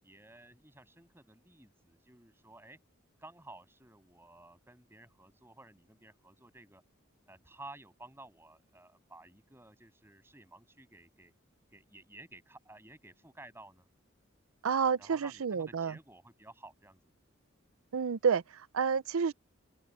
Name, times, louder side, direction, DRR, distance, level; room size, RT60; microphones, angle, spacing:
voice 1, 0.0-2.8 3.2-6.8 7.3-11.3 11.7-13.9 15.0-17.1, right 2 dB, 10° right, 7.6 m, -54 dB
voice 2, 14.6-16.0 17.9-19.3, right 6 dB, 90° right, 0.5 m, -30 dB
open air
head